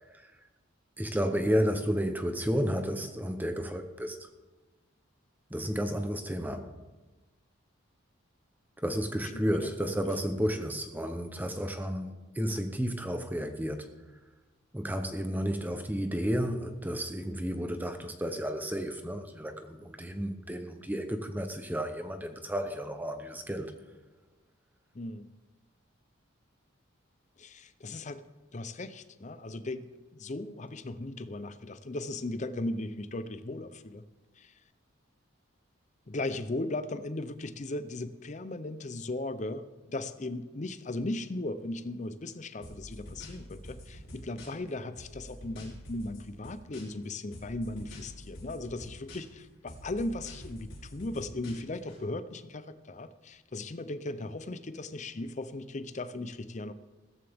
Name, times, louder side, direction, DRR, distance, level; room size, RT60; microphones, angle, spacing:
voice 1, 1.0-4.3 5.5-6.8 8.8-13.9 14.7-23.7, equal, 10° right, 7 dB, 0.7 m, -32 dB
voice 2, 9.3-9.9 24.9-25.3 27.4-28.2 28.5-34.0 34.4-34.5 36.1-56.7, left 2 dB, 35° left, 12 dB, 0.6 m, -37 dB
sound 1, 42.6-44.7 45.0-47.1 47.3-49.4 49.7-52.0, equal, 70° left, 5.4 m, -47 dB
16.0 x 14.0 x 3.5 m, 1.2 s
head